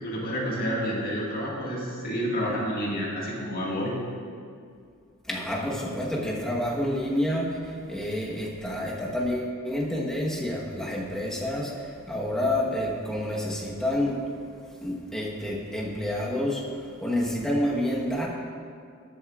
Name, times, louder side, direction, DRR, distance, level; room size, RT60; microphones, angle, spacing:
voice 1, 0.0-3.9, equal, 45° left, -4 dB, 1.9 m, -29 dB
voice 2, 5.3-11.7 12.1-14.2 14.8-16.6 17.0-18.3, left 1 dB, 5° left, -4 dB, 1.2 m, -28 dB
13.5 x 8.2 x 2.4 m, 2.3 s
head